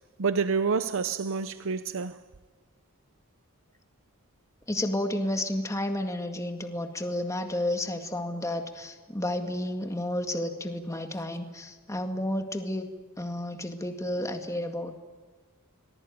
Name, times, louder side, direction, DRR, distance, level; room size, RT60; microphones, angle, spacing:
voice 1, 0.2-2.2, right 5 dB, 65° right, 0.7 m, -28 dB
voice 2, 4.7-12.9 13.2-14.9, left 1 dB, 15° left, 2.0 m, -31 dB
26.0 x 20.0 x 9.6 m
head